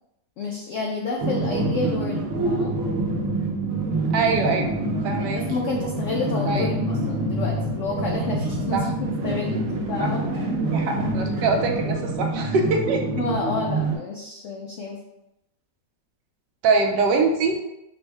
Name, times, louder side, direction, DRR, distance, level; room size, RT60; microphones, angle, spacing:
voice 1, 0.4-2.7 5.2-9.0 9.2-9.6 9.9-10.6 13.2-15.0, left 3 dB, 85° left, -1 dB, 0.6 m, -30 dB
sound 1, 1.2-14.0, right 2 dB, 55° right, 1.0 m, -26 dB
voice 2, 4.1-4.7 5.0-5.4 6.5-6.7 8.7-8.8 10.0-10.1 10.7-13.0 16.6-17.6, right 4 dB, 80° right, 2 dB, 1.2 m, -23 dB
5.3 x 2.1 x 3.3 m, 0.87 s
omnidirectional pair, 1.9 m